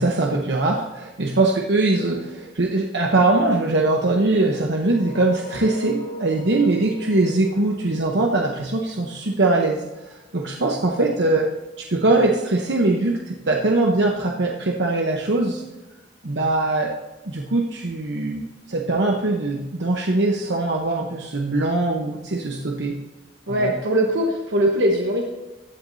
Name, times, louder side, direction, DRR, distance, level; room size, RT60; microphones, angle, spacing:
voice 1, 0.0-11.5 11.8-15.6 16.2-16.9 17.3-23.0 23.5-23.7, right 2 dB, 70° right, 0 dB, 0.9 m, -22 dB
sound 1, 4.8-9.6, right 1 dB, 40° left, 3.8 m, -39 dB
voice 2, 23.5-25.2, equal, 90° right, 0 dB, 1.2 m, -21 dB
15.0 x 9.2 x 2.7 m, 1.1 s
head